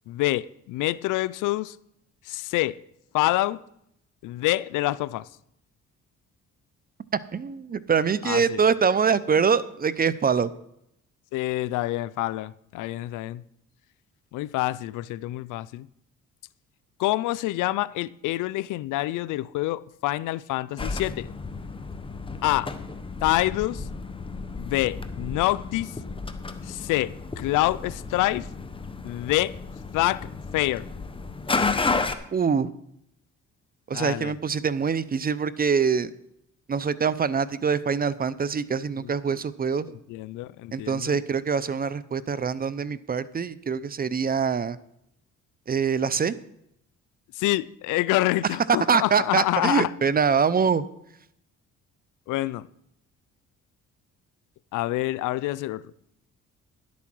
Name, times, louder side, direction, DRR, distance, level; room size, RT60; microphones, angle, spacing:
voice 1, 0.1-1.8 2.3-2.8 3.1-3.6 4.2-5.3 8.2-8.6 11.3-13.4 14.3-15.9 17.0-21.3 22.4-22.7 23.2-23.9 24.6-25.9 26.6-28.5 29.0-29.6 29.9-30.3 30.5-30.9 33.9-34.3 39.0-39.4 40.1-41.2 47.3-49.9 52.3-52.7 54.7-55.8, left 17 dB, 90° left, 0.5 m, -27 dB
voice 2, 7.3-10.5 32.3-32.7 33.9-36.1 36.7-39.9 40.7-44.8 45.7-46.3 48.9-50.9, right 6 dB, 30° right, 0.6 m, -24 dB
sound 1, 20.8-32.1, left 4 dB, 15° left, 0.9 m, -32 dB
11.0 x 8.5 x 6.1 m
cardioid pair, 90°, 30 cm